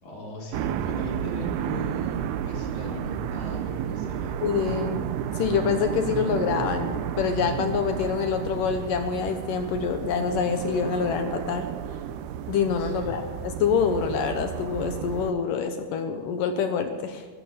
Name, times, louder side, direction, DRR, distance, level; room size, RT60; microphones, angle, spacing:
voice 1, 0.0-4.4 12.8-13.3, left 2 dB, 45° left, -3 dB, 5.4 m, -39 dB
sound 1, 0.5-15.3, right 10 dB, 80° right, 2.7 m, -32 dB
voice 2, 4.4-5.1 5.3-11.7 12.5-17.3, left 6 dB, 70° left, 7 dB, 2.3 m, -26 dB
15.0 x 12.5 x 7.3 m, 1.4 s
omnidirectional pair, 4.6 m